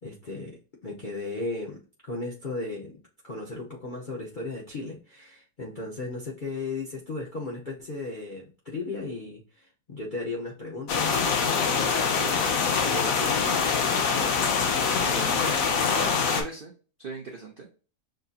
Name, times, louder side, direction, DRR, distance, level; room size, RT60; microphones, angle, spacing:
voice 1, 0.0-13.8, left 3 dB, 45° left, -3 dB, 0.6 m, -36 dB
sound 1, 10.9-16.4, left 5 dB, 60° left, 1.1 m, -24 dB
voice 2, 14.9-15.6 15.9-16.7 17.0-17.7, right 3 dB, 90° right, 2 dB, 0.4 m, -38 dB
6.4 x 2.7 x 2.4 m, 0.37 s
omnidirectional pair, 1.9 m